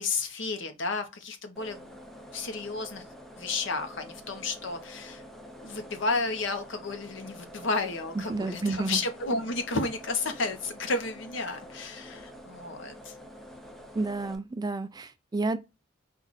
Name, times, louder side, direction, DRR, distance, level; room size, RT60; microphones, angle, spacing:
voice 1, 0.0-1.9 2.3-3.0 3.4-5.2 5.6-13.1, left 3 dB, 65° left, 0.9 m, -32 dB
sound 1, 1.6-14.4, equal, ahead, 0.7 m, -47 dB
voice 2, 8.3-9.0 13.9-15.6, right 3 dB, 20° right, 0.3 m, -30 dB
4.5 x 2.5 x 4.0 m
head